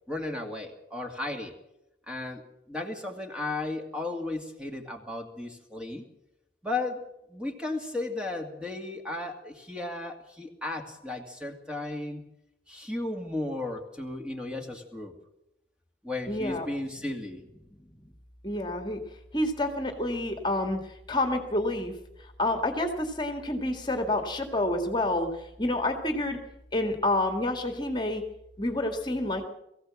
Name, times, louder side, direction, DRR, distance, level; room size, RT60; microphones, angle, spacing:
voice 1, 0.1-1.5 2.1-2.4 2.7-6.0 6.6-12.2 12.7-15.1 16.0-17.4, left 2 dB, 5° right, 3 dB, 2.3 m, -35 dB
voice 2, 16.3-16.7 18.0-18.1 18.4-21.9 22.2-26.4 26.7-28.2 28.6-29.5, left 1 dB, 25° left, 5 dB, 1.9 m, -29 dB
22.5 x 15.5 x 7.6 m, 0.88 s
head